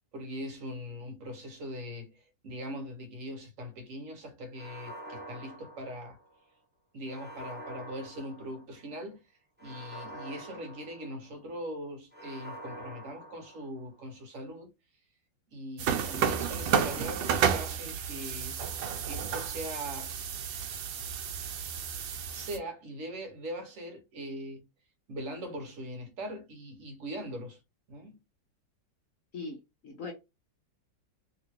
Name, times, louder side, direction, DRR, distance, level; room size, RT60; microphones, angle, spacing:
voice 1, 0.1-6.2 6.9-14.7 15.5-18.7 19.0-20.2 22.3-24.7 25.1-27.6 27.9-28.2, equal, 55° right, 1.2 m, -41 dB
sound 1, 4.5-6.4 7.1-8.9 9.6-11.5 12.1-14.0, right 1 dB, 10° right, 0.5 m, -46 dB
sound 2, 15.8-22.6, right 7 dB, 80° right, 1.3 m, -31 dB
voice 2, 29.3-30.1, left 3 dB, 60° left, 1.0 m, -40 dB
3.0 x 3.0 x 2.8 m
omnidirectional pair, 1.9 m